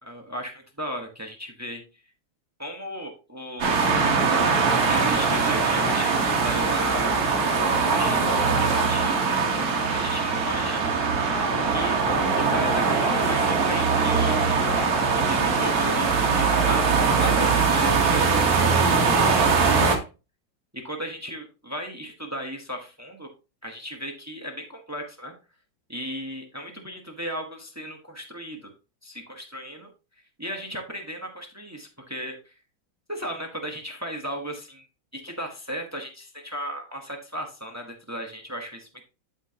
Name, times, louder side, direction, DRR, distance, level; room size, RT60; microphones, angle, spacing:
voice 1, 0.0-1.8 2.6-4.0 4.3-7.2 7.9-9.5 9.9-11.1 11.7-12.0 12.4-14.8 15.1-20.0 20.7-23.3 23.6-25.3 25.9-28.7 29.0-29.9 30.4-32.5 33.1-34.9 35.1-39.0, equal, 15° right, 3 dB, 0.5 m, -36 dB
sound 1, 3.6-20.0, right 4 dB, 50° right, 1.6 m, -22 dB
12.0 x 4.5 x 2.8 m, 0.31 s
omnidirectional pair, 2.2 m